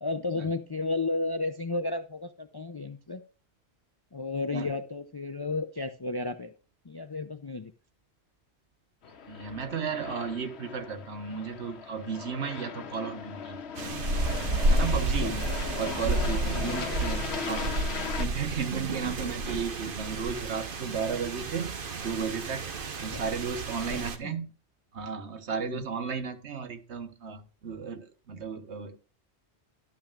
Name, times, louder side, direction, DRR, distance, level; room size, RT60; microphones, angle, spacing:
voice 1, 0.0-3.2 4.1-6.5 6.8-7.7 15.2-15.5 16.5-16.8 23.1-23.2 23.9-24.3 25.6-25.9, left 3 dB, 35° left, 9 dB, 0.4 m, -33 dB
Aircraft, 9.0-18.3, left 6 dB, 70° left, 1.1 m, -38 dB
voice 2, 9.3-15.4 15.8-24.5 24.9-29.0, right 6 dB, 90° right, 9 dB, 1.4 m, -34 dB
sound 1, 13.8-24.2, right 2 dB, 55° right, 1.2 m, -31 dB
12.0 x 8.9 x 2.4 m, 0.36 s
omnidirectional pair, 1.1 m